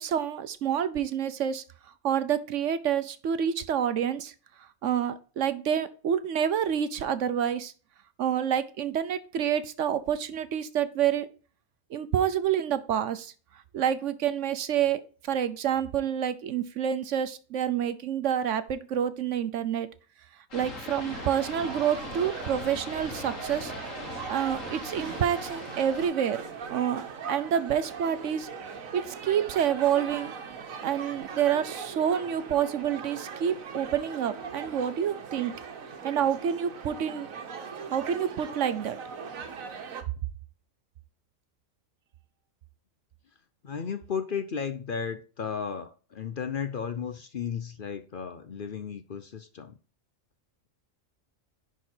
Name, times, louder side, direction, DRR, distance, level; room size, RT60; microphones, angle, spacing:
voice 1, 0.0-1.6 2.0-4.3 4.8-7.7 8.2-11.3 11.9-13.3 13.7-19.9 20.5-23.7 24.3-26.4 26.7-28.5 28.9-30.3 30.8-35.5 36.0-37.3 37.9-39.0, right 9 dB, 70° right, 1.1 m, -28 dB
sound 1, 20.5-26.1, left 3 dB, 75° left, 2.1 m, -40 dB
sound 2, 21.1-40.0, right 6 dB, 90° right, 1.5 m, -40 dB
voice 2, 43.6-49.8, left 6 dB, 50° left, 0.7 m, -34 dB
10.5 x 4.6 x 4.4 m
omnidirectional pair, 1.4 m